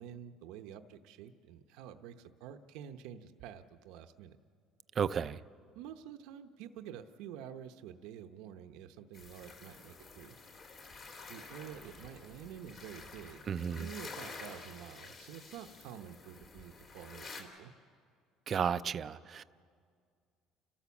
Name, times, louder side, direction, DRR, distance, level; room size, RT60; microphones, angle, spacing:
voice 1, 0.0-4.4 5.7-10.4 11.3-17.7, right 9 dB, 80° right, 0.8 m, -49 dB
voice 2, 5.0-5.4 13.5-13.9 18.5-19.4, right 7 dB, 35° right, 0.5 m, -33 dB
sound 1, 9.1-17.4, left 4 dB, 40° left, 3.1 m, -50 dB
30.0 x 13.0 x 7.2 m
cardioid pair, 140°, 0 cm